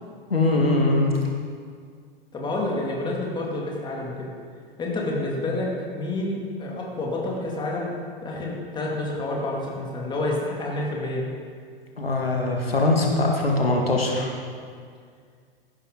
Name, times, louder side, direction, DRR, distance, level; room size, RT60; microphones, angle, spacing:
voice 1, 0.3-1.2 12.0-14.3, left 2 dB, 80° left, 0 dB, 2.0 m, -22 dB
voice 2, 2.3-4.3 4.8-7.9 8.2-11.2, left 2 dB, 15° left, -2 dB, 2.4 m, -28 dB
15.0 x 11.5 x 3.8 m, 2.1 s
figure-of-eight pair, 100°, 29 cm